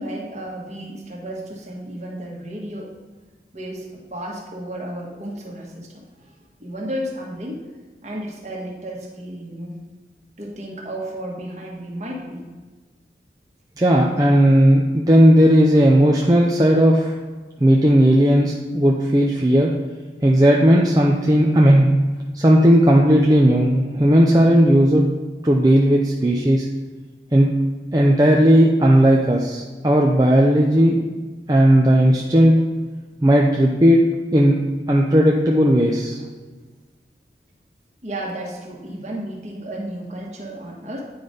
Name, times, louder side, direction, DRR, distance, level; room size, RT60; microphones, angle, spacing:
voice 1, 0.0-2.9 3.5-6.3 6.6-7.6 8.0-9.8 10.4-12.5 14.2-14.4 38.0-41.0, right 1 dB, 40° right, -2 dB, 1.5 m, -33 dB
voice 2, 13.8-17.1 17.6-19.7 20.2-21.9 22.3-25.0 25.4-26.7 27.3-27.5 27.9-31.0 31.5-32.5 33.2-34.0 34.3-34.6 34.9-36.2, equal, 20° right, -1 dB, 0.5 m, -15 dB
9.4 x 4.0 x 5.1 m, 1.4 s
head